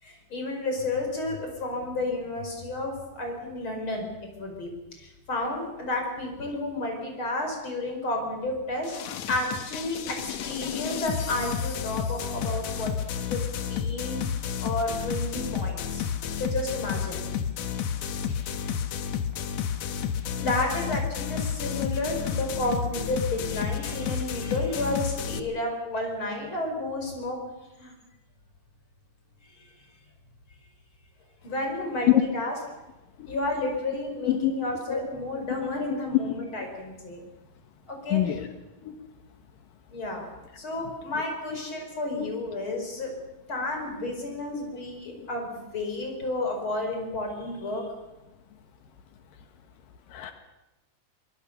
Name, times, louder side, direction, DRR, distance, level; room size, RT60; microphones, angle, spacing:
voice 1, 0.0-4.1 4.4-4.7 5.0-9.0 9.3-12.9 13.3-13.4 13.7-14.2 14.6-16.0 16.4-17.2 18.3-18.8 20.4-27.4 27.8-27.9 31.4-32.6 33.3-37.3 37.9-38.2 39.9-40.3 40.6-43.1 43.5-47.8, left 2 dB, 35° left, 2 dB, 5.9 m, -31 dB
sound 1, 8.8-25.4, left 8 dB, 60° left, 2.1 m, -31 dB
voice 2, 38.1-38.5 38.8-38.9 41.5-41.6 42.2-42.3 45.2-45.3 50.1-50.3, left 13 dB, 80° left, 7 dB, 3.2 m, -25 dB
24.0 x 22.0 x 6.8 m, 1.0 s
omnidirectional pair, 3.9 m